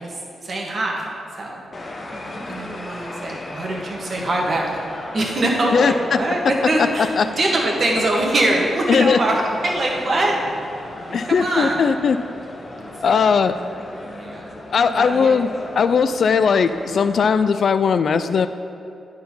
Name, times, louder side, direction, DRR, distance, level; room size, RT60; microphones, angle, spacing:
voice 1, 0.0-1.6 2.1-4.7 5.1-10.8 11.3-11.8 12.6-13.3 14.0-14.5 14.8-15.4, right 1 dB, 50° right, -1 dB, 1.6 m, -23 dB
sound 1, 1.7-17.3, left 1 dB, 35° left, 1.0 m, -36 dB
voice 2, 5.7-6.2 7.2-7.3 8.9-9.2 11.1-12.2 13.0-13.6 14.7-15.5 15.8-18.5, left 6 dB, 65° left, 11 dB, 0.3 m, -18 dB
9.6 x 4.4 x 5.5 m, 2.6 s
cardioid pair, 80°, 0 cm